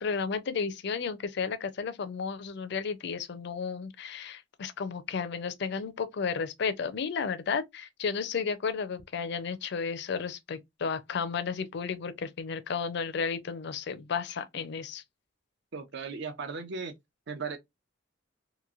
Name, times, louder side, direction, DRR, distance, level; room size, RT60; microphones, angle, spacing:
voice 1, 0.0-15.0, left 5 dB, 60° left, 0.5 m, -33 dB
voice 2, 15.7-16.9 17.3-17.6, right 5 dB, 65° right, 0.6 m, -36 dB
3.0 x 2.5 x 2.4 m
head